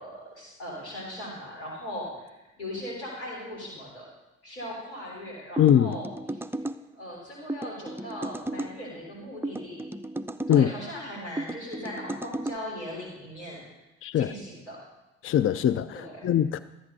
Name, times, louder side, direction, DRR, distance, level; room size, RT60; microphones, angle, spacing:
voice 1, 0.0-2.3 2.6-4.1 4.4-6.4 6.9-9.8 10.5-13.6 14.1-14.8 15.9-16.2, equal, 85° left, 3.6 m, -39 dB
voice 2, 5.6-6.0 10.5-10.7 14.0-14.3 15.2-16.6, left 10 dB, 40° left, 0.5 m, -22 dB
sound 1, 5.6-6.8 7.5-8.7 9.4-10.7 11.4-12.6, right 1 dB, 5° right, 0.6 m, -34 dB
13.0 x 8.7 x 5.3 m
figure-of-eight pair, 40°, 33 cm